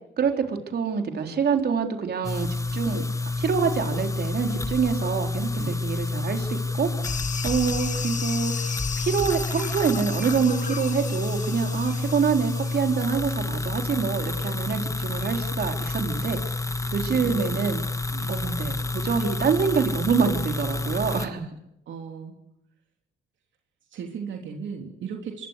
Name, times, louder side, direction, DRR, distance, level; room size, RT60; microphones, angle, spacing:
voice 1, 0.2-3.1 3.4-6.9 7.4-16.4 16.9-17.8 18.3-21.5, right 6 dB, 55° right, 4 dB, 3.8 m, -26 dB
sound 1, 2.2-21.3, left 3 dB, 15° left, 1.7 m, -29 dB
sound 2, 7.0-13.2, left 7 dB, 40° left, 0.9 m, -36 dB
voice 2, 17.0-17.4 18.1-18.4 21.9-22.3 23.9-25.5, right 6 dB, 70° right, 2 dB, 3.3 m, -36 dB
26.0 x 22.0 x 6.6 m, 0.82 s
cardioid pair, 90°, 20 cm